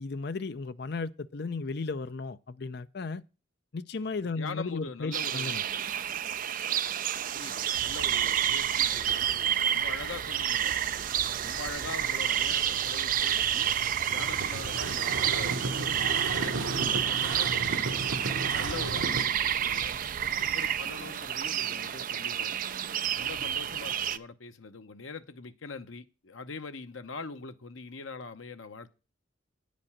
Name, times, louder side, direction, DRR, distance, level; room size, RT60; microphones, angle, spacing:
voice 1, 0.0-3.2 3.7-5.6, left 4 dB, 55° left, 0.6 m, -35 dB
voice 2, 4.2-5.7 7.3-10.7 11.4-13.4 14.1-18.1 18.5-19.9 20.4-22.5 23.1-28.9, left 4 dB, 80° left, 0.9 m, -43 dB
sound 1, 5.1-24.2, right 9 dB, 45° right, 0.4 m, -29 dB
sound 2, 10.8-19.2, right 3 dB, 85° right, 1.2 m, -36 dB
9.7 x 5.2 x 7.2 m
head